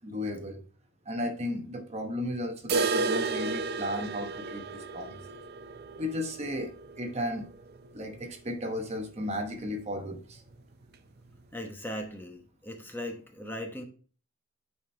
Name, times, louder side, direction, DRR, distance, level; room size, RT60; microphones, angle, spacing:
voice 1, 0.0-0.6 1.1-5.4 6.0-6.7 7.0-7.5 7.9-10.4, left 1 dB, 30° right, 4 dB, 1.0 m, -34 dB
sound 1, 2.7-8.5 8.8-8.9 9.3-9.4 9.9-10.0 10.8-10.9, right 4 dB, 50° right, 0.6 m, -33 dB
voice 2, 11.5-13.8, equal, 10° left, 3 dB, 0.9 m, -38 dB
9.2 x 4.3 x 3.3 m, 0.41 s
head